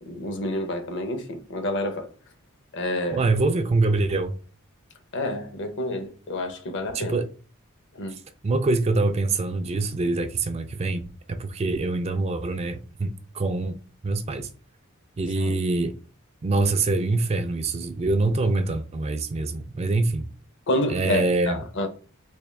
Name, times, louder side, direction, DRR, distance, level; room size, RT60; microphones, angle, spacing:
voice 1, 0.0-2.1 2.7-3.3 5.1-7.2 7.9-8.2 15.4-15.6 20.7-21.9, left 1 dB, 55° left, 0.6 m, -29 dB
voice 2, 3.1-4.4 6.9-7.3 8.4-11.0 11.3-14.5 15.2-15.9 16.4-20.3 20.9-21.6, right 3 dB, 30° right, 0.3 m, -25 dB
3.5 x 2.6 x 3.1 m
head